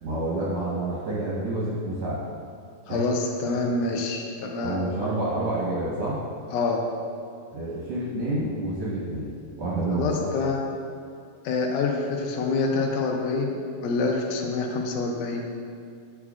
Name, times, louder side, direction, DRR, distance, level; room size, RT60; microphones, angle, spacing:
voice 1, 0.0-2.2 2.9-3.0 3.8-3.9 4.6-6.2 7.5-10.3, right 2 dB, 70° right, -7 dB, 1.6 m, -28 dB
voice 2, 2.9-4.8 6.5-6.8 9.9-10.6 11.5-15.5, left 3 dB, 90° left, 1 dB, 1.8 m, -26 dB
9.2 x 4.8 x 2.4 m, 2.3 s
omnidirectional pair, 4.1 m